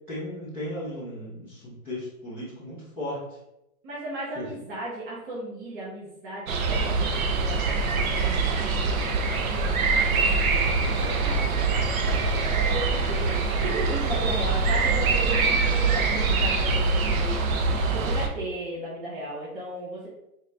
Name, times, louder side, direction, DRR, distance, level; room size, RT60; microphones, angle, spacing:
voice 1, 0.1-3.2 4.3-4.4, left 1 dB, 5° right, -11 dB, 0.5 m, -35 dB
voice 2, 3.8-9.1 9.4-20.1, right 1 dB, 35° right, -6 dB, 1.0 m, -36 dB
sound 1, 6.5-18.3, right 4 dB, 65° right, 0.7 m, -24 dB
4.1 x 2.5 x 3.2 m, 0.86 s
hypercardioid pair, 160°, 45 cm